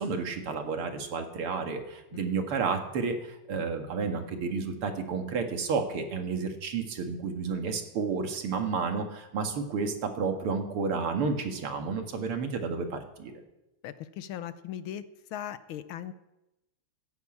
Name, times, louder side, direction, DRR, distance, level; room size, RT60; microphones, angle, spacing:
voice 1, 0.0-13.4, right 5 dB, 80° right, 5 dB, 2.6 m, -31 dB
voice 2, 13.8-15.0 15.3-16.1, left 11 dB, 75° left, 13 dB, 1.6 m, -38 dB
14.0 x 11.0 x 8.6 m, 0.96 s
omnidirectional pair, 2.4 m